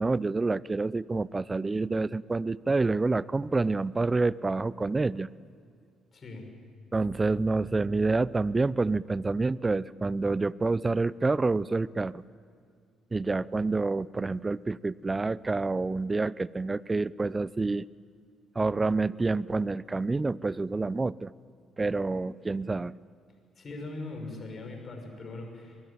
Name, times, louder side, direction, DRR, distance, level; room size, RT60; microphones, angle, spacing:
voice 1, 0.0-5.3 6.9-12.2 13.1-17.9 18.6-21.3 21.8-22.9, right 3 dB, 25° right, 21 dB, 0.5 m, -28 dB
voice 2, 6.1-6.5 23.6-25.8, left 2 dB, 45° left, 4 dB, 6.5 m, -40 dB
22.5 x 21.5 x 9.1 m, 2.3 s
hypercardioid pair, 50°, 0 cm